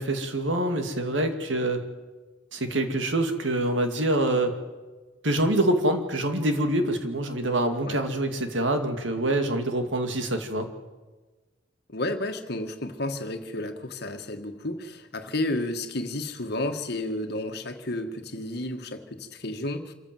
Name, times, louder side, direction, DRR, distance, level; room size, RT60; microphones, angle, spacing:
voice 1, 0.0-1.8 2.5-4.5 5.2-10.7, right 1 dB, 85° right, 6 dB, 2.3 m, -25 dB
voice 2, 11.9-19.9, left 1 dB, 60° left, 6 dB, 1.7 m, -32 dB
26.0 x 14.5 x 7.8 m, 1.3 s
head